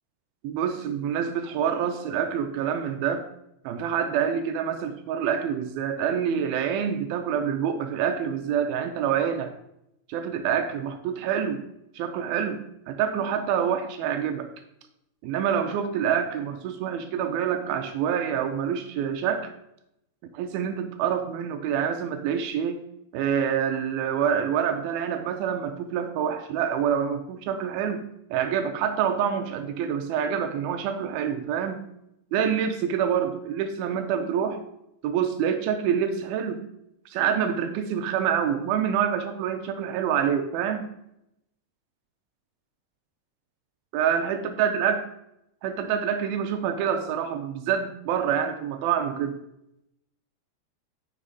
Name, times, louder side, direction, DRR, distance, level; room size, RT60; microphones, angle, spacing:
voice 1, 0.4-3.3 3.6-9.5 10.1-11.6 11.9-12.6 12.9-14.5 15.2-19.5 20.3-22.8 23.1-28.0 28.3-31.8 32.3-34.6 35.0-36.6 37.1-40.9 43.9-45.1 45.6-49.4, right 8 dB, 80° right, 7 dB, 2.2 m, -26 dB
7.9 x 6.3 x 4.1 m, 0.81 s
omnidirectional pair, 4.7 m